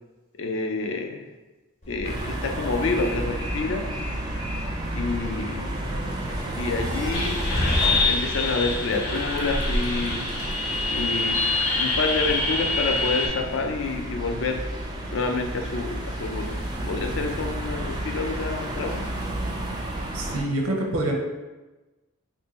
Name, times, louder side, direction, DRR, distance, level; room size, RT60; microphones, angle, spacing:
voice 1, 0.4-1.2 1.9-3.8 4.9-5.7 6.6-7.4 8.0-10.2 10.9-11.4 11.8-14.6 15.1-16.6 16.8-19.0, left 3 dB, 60° left, 4 dB, 0.4 m, -28 dB
Train, 1.8-10.2, left 1 dB, 35° left, 0.7 m, -34 dB
sound 1, 2.0-20.4, right 1 dB, 20° right, 0.3 m, -31 dB
sound 2, 7.1-13.3, left 3 dB, 80° left, 0.8 m, -26 dB
voice 2, 20.1-21.1, right 1 dB, 85° right, 1 dB, 0.6 m, -26 dB
2.6 x 2.6 x 4.1 m, 1.1 s
head